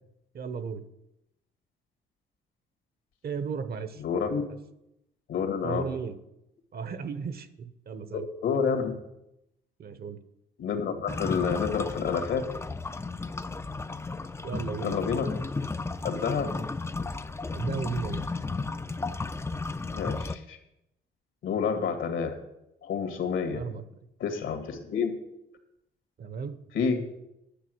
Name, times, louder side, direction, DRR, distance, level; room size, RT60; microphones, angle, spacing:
voice 1, 0.3-0.8 3.2-4.0 5.6-6.2 6.7-8.3 9.8-10.2 14.4-15.0 17.5-18.2 23.5-23.8 26.2-26.6, right 5 dB, 50° right, 12 dB, 0.9 m, -35 dB
voice 2, 4.0-4.5 5.3-5.9 8.1-8.9 10.6-12.4 14.8-15.3 16.0-16.5 19.9-20.6 21.4-22.4 22.8-23.6 24.2-25.1 26.7-27.0, left 6 dB, 75° left, 4 dB, 1.9 m, -29 dB
sound 1, 11.1-20.4, left 3 dB, 15° left, 0.4 m, -34 dB
10.0 x 6.1 x 7.8 m, 0.86 s
cardioid pair, 90°, 20 cm